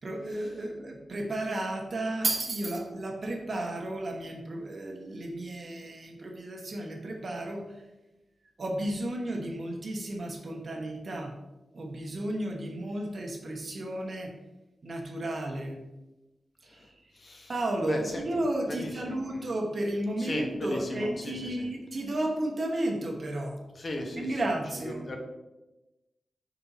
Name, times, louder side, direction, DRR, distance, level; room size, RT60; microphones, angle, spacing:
voice 1, 0.0-7.8 8.6-11.3 11.7-14.3 14.8-15.8 16.6-17.1 17.5-23.6 24.2-25.1, right 1 dB, 50° right, 2 dB, 1.1 m, -33 dB
voice 2, 16.6-17.5 17.8-18.2 18.7-19.4 20.2-21.7 23.7-24.4 24.8-25.2, left 1 dB, 45° left, 2 dB, 1.1 m, -36 dB
5.3 x 4.4 x 4.1 m, 1.0 s
cardioid pair, 75°, 0 cm